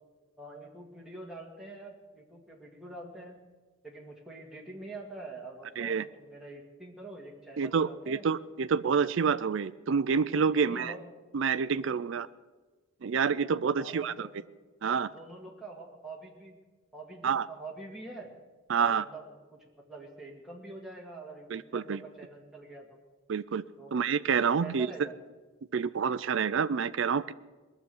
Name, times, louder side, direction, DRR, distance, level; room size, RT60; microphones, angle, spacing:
voice 1, 0.4-3.4 3.8-8.2 10.5-11.0 13.7-14.3 15.0-16.6 16.9-18.3 18.8-23.0 23.8-24.1 24.6-25.1, right 2 dB, ahead, -2 dB, 2.0 m, -45 dB
voice 2, 7.6-10.9 11.3-12.3 13.0-14.3 14.8-15.1 17.2-17.5 18.7-19.0 21.5-22.0 23.3-23.6 23.9-24.9 25.7-27.3, right 6 dB, 60° right, 13 dB, 0.4 m, -28 dB
20.5 x 6.9 x 9.4 m, 1.3 s
head